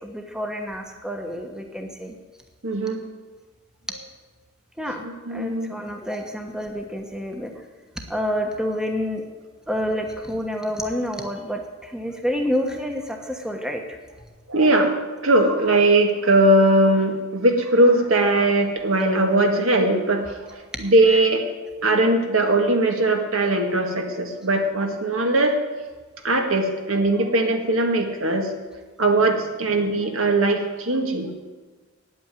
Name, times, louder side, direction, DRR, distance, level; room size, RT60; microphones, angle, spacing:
voice 1, 0.0-2.1 4.8-7.5 8.1-9.2 9.7-14.0, equal, 5° right, 3 dB, 1.1 m, -28 dB
voice 2, 2.6-3.0 5.0-5.7 14.5-14.9 15.2-20.4 20.8-21.4 21.8-25.6 26.2-28.5 29.0-31.3, right 2 dB, 75° right, 3 dB, 1.8 m, -20 dB
9.4 x 8.7 x 9.1 m, 1.3 s
head